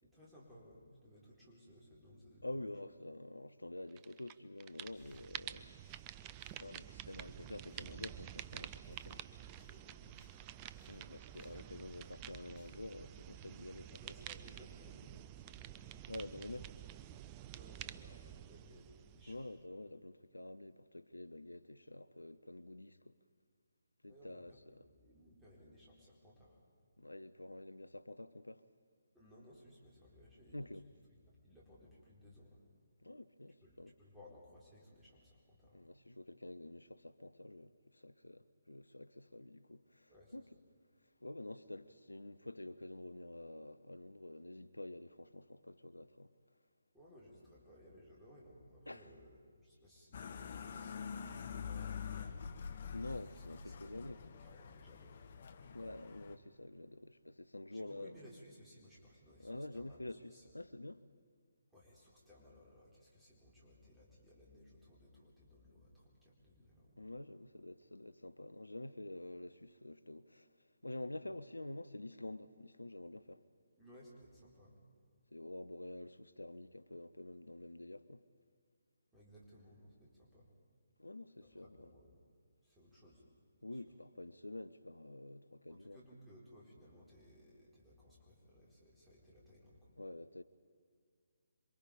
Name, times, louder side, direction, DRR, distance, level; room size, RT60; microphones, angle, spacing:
voice 1, 0.0-2.8 9.2-10.5 13.9-15.9 17.5-19.8 24.1-26.6 29.1-32.6 33.6-35.9 40.1-40.3 46.9-52.7 53.2-55.3 57.7-60.0 60.3-60.4 61.7-67.1 73.8-74.8 79.1-80.5 81.4-82.1 82.6-83.2 83.7-83.8 85.7-89.9, left 1 dB, 5° right, 4.2 m, -61 dB
voice 2, 2.4-5.7 6.6-9.2 10.9-14.0 16.1-16.7 19.3-23.1 24.0-24.5 27.0-28.6 30.5-30.9 33.0-33.9 35.7-40.5 41.2-46.3 48.9-49.1 52.9-54.2 55.7-58.1 59.4-61.0 67.0-70.5 70.8-73.4 75.3-78.2 81.0-81.9 83.6-86.0 90.0-90.4, left 1 dB, 80° left, 0.7 m, -48 dB
sound 1, 4.0-4.3 4.6-19.6, right 12 dB, 20° right, 0.5 m, -50 dB
sound 2, 4.6-4.7 4.9-5.5 5.8-8.1 8.3-13.0, left 3 dB, 25° left, 5.0 m, -72 dB
sound 3, 50.1-56.4, left 6 dB, 45° left, 1.1 m, -46 dB
27.5 x 24.0 x 5.1 m
figure-of-eight pair, 140°, 0 cm